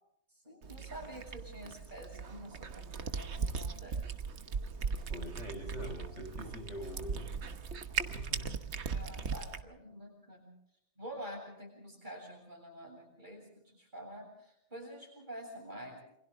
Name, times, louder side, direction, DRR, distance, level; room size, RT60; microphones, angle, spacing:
voice 1, 0.3-4.0 8.8-10.5 11.0-16.0, equal, 40° right, 1 dB, 7.7 m, -48 dB
Cat, 0.6-9.6, right 5 dB, 70° right, 1.4 m, -38 dB
voice 2, 5.1-7.3 8.0-8.5, equal, 80° left, 4 dB, 5.6 m, -44 dB
27.5 x 25.0 x 3.8 m, 0.76 s
omnidirectional pair, 1.2 m